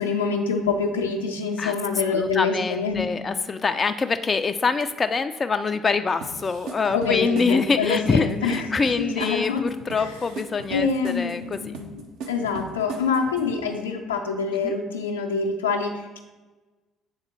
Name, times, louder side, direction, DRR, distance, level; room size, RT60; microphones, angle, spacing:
voice 1, 0.0-3.3 6.9-8.7 9.0-9.6 10.0-10.1 10.7-12.0 12.3-16.2, left 5 dB, 85° left, 1 dB, 0.6 m, -26 dB
voice 2, 2.1-11.8 14.6-14.8, left 4 dB, 35° left, 9 dB, 0.3 m, -25 dB
sound 1, 6.2-13.6, right 4 dB, 70° right, 0.8 m, -38 dB
7.9 x 3.6 x 4.3 m, 1.2 s
figure-of-eight pair, 50°, 0 cm